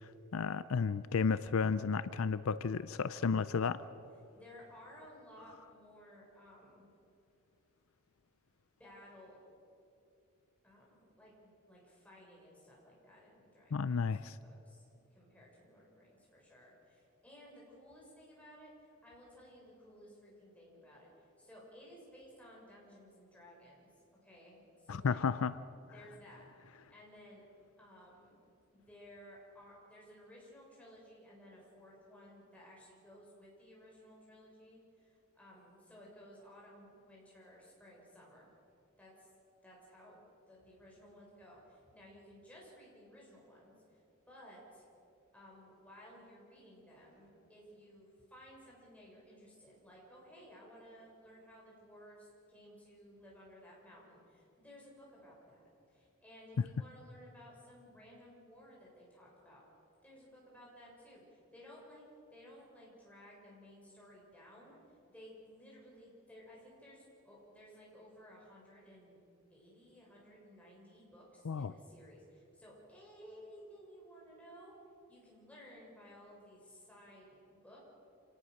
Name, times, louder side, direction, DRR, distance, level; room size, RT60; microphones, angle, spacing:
voice 1, 0.3-3.8 13.7-14.4 24.9-25.5 71.5-71.7, left 5 dB, 70° left, 15 dB, 0.5 m, -32 dB
voice 2, 4.3-6.9 8.8-9.4 10.6-14.0 14.4-14.8 15.1-18.7 19.0-21.1 21.4-23.9 24.2-25.3 25.9-26.4 26.9-27.4 27.8-28.4 28.7-38.5 39.0-39.3 39.6-44.0 44.3-44.9 45.3-59.6 60.0-62.0 62.3-64.8 65.1-69.2 69.5-74.7 75.1-77.8, equal, 5° left, -4 dB, 6.6 m, -57 dB
27.5 x 18.5 x 6.5 m, 2.7 s
head